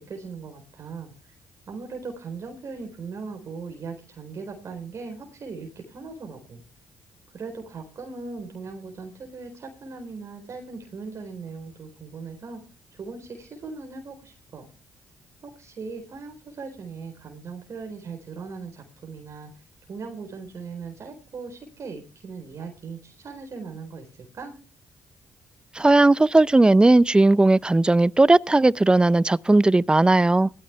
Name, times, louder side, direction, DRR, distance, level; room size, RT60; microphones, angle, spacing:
voice 1, 0.0-1.3 1.7-6.6 7.3-12.6 12.9-14.7 15.4-19.5 19.9-24.6, right 4 dB, 60° right, 4.1 m, -39 dB
voice 2, 25.7-30.5, right 2 dB, 15° right, 0.5 m, -17 dB
17.0 x 13.5 x 3.4 m
supercardioid pair, 60°, 6 cm